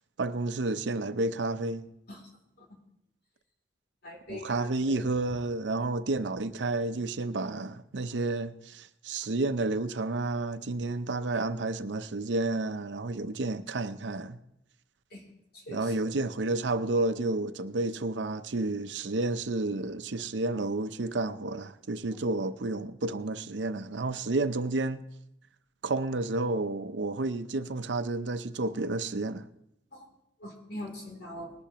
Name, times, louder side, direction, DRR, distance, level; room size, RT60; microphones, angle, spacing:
voice 1, 0.2-1.9 4.3-14.4 15.7-25.0 25.8-29.5, right 2 dB, 85° right, 0.7 m, -31 dB
voice 2, 4.0-5.0 15.1-15.2 15.5-16.1 29.9-30.1 30.4-31.5, left 1 dB, 60° left, 3.0 m, -43 dB
20.5 x 11.5 x 3.0 m
head